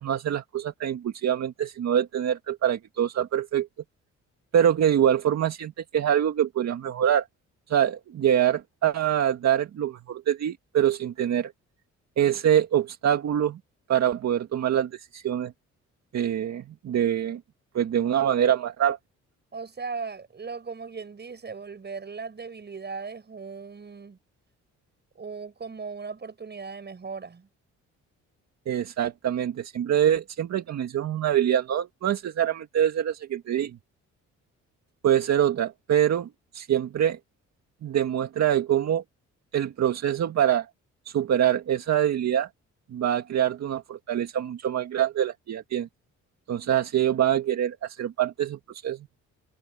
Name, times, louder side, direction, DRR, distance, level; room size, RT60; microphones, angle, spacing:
voice 1, 0.0-3.7 4.5-7.3 7.7-11.5 12.2-13.6 13.9-15.5 16.1-17.4 17.7-19.0 28.7-33.8 35.0-37.2 37.8-39.0 39.5-40.7 41.1-42.5 42.9-45.9 46.5-49.1, right 10 dB, 60° right, 2.0 m, -25 dB
voice 2, 19.5-24.2 25.1-27.5, right 5 dB, 35° right, 6.7 m, -37 dB
cardioid pair, 90°, 30 cm